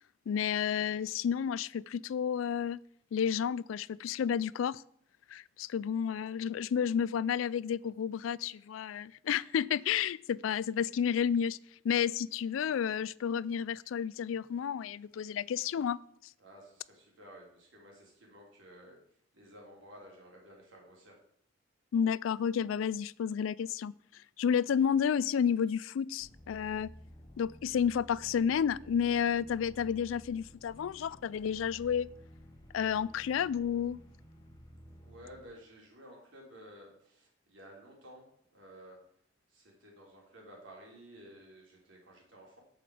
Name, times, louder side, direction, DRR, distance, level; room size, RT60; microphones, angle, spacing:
voice 1, 0.3-2.8 3.1-4.8 5.3-11.6 11.8-16.0 21.9-23.9 24.4-26.9 27.4-32.1 32.7-34.0, left 8 dB, 85° left, 22 dB, 0.3 m, -31 dB
voice 2, 16.4-19.0 19.3-21.2 35.0-39.0 39.5-42.6, equal, 70° right, -2 dB, 3.6 m, -54 dB
sound 1, 26.2-35.4, equal, 20° left, 1.2 m, -54 dB
8.7 x 7.7 x 4.9 m, 0.68 s
head